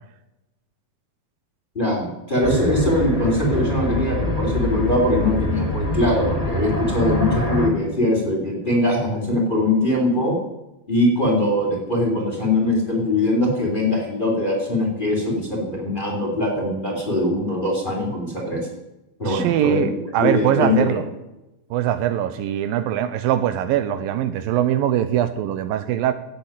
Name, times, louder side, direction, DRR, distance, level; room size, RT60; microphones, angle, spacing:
voice 1, 1.7-10.3 10.9-18.6 19.2-19.9 20.2-21.0, left 1 dB, 15° left, -1 dB, 3.5 m, -21 dB
sound 1, 2.4-7.7, left 1 dB, 80° left, 0.3 m, -24 dB
voice 2, 19.2-21.0 21.7-26.1, right 11 dB, 80° right, 11 dB, 2.4 m, -22 dB
16.0 x 7.7 x 9.1 m, 0.96 s
omnidirectional pair, 4.2 m